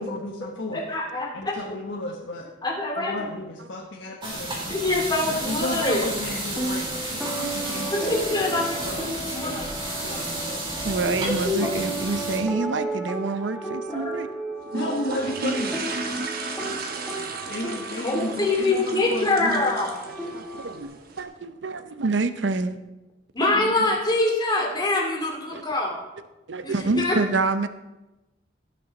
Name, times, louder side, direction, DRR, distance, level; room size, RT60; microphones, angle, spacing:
voice 1, 0.0-0.8 1.3-2.5 3.0-4.8 5.2-7.2 7.5-8.3 8.6-9.0 9.4-9.7 10.0-10.6 14.7-15.8 17.5-19.6 23.5-23.9, left 1 dB, 75° left, -1 dB, 1.3 m, -33 dB
voice 2, 0.7-1.5 2.6-3.2 4.7-6.0 7.9-9.6 10.1-10.4 11.3-11.7 12.1-12.2 13.9-14.2 14.8-14.9 18.0-19.9 23.3-26.0 26.6-27.2, left 2 dB, 25° left, 0 dB, 2.3 m, -25 dB
sound 1, 4.2-12.4, right 1 dB, 25° right, 3.8 m, -32 dB
sound 2, 6.5-20.8, right 2 dB, ahead, 1.4 m, -34 dB
voice 3, 9.0-9.3 10.8-14.3 16.9-17.6 20.3-22.8 25.5-25.6 26.5-27.7, right 3 dB, 70° right, 11 dB, 0.6 m, -28 dB
sound 3, 14.7-21.2, right 3 dB, 55° right, 1.3 m, -34 dB
17.0 x 6.8 x 4.0 m, 1.0 s
head